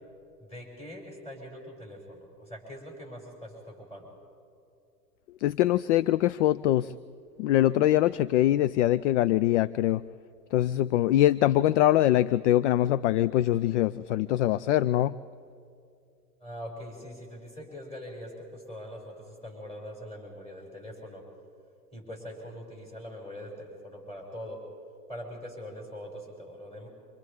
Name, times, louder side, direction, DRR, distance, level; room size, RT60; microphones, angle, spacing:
voice 1, 0.4-4.1 16.4-21.3 21.9-24.6 25.1-26.9, equal, 15° left, -2 dB, 6.6 m, -42 dB
voice 2, 5.4-6.9 7.4-10.0 10.5-15.2, left 13 dB, 50° left, 18 dB, 0.4 m, -23 dB
28.0 x 26.0 x 3.6 m, 2.5 s
hypercardioid pair, 105°, 47 cm